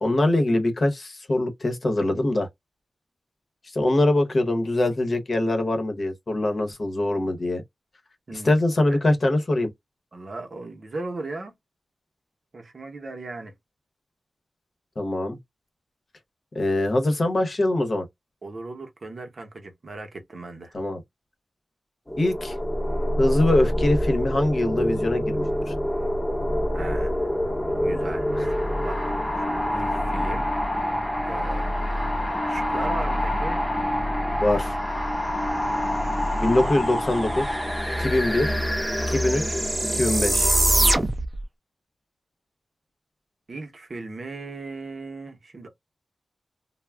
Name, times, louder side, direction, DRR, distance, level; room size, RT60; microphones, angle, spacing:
voice 1, 0.0-2.5 3.7-7.6 8.3-9.7 15.0-15.4 16.5-18.1 20.7-21.0 22.2-22.5 23.2-25.7 34.4-34.8 36.4-37.4 38.0-38.5 39.1-39.6 39.9-40.5, left 1 dB, 50° left, 0.8 m, -23 dB
voice 2, 10.1-11.5 12.5-13.5 18.4-20.8 26.7-27.3 27.6-28.3 28.8-30.9 31.2-33.6 43.5-45.7, right 3 dB, 55° right, 0.8 m, -37 dB
sound 1, 22.1-41.0, equal, 10° left, 0.8 m, -26 dB
sound 2, 36.9-37.0 37.2-41.4, right 2 dB, 30° right, 0.5 m, -26 dB
2.3 x 2.0 x 3.3 m
wide cardioid pair, 80°, 0 cm